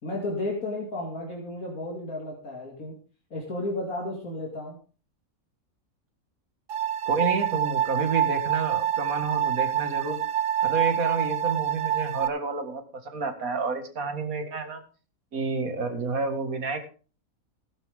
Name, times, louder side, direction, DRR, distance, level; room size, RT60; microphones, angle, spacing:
voice 1, 0.0-3.0 3.3-4.8, left 2 dB, 85° left, -2 dB, 3.0 m, -33 dB
sound 1, 6.7-12.3, right 10 dB, 65° right, 1.3 m, -26 dB
voice 2, 7.1-10.2 10.6-14.8 15.3-16.9, right 4 dB, 85° right, 7 dB, 2.3 m, -30 dB
16.5 x 11.0 x 3.6 m, 0.36 s
omnidirectional pair, 1.4 m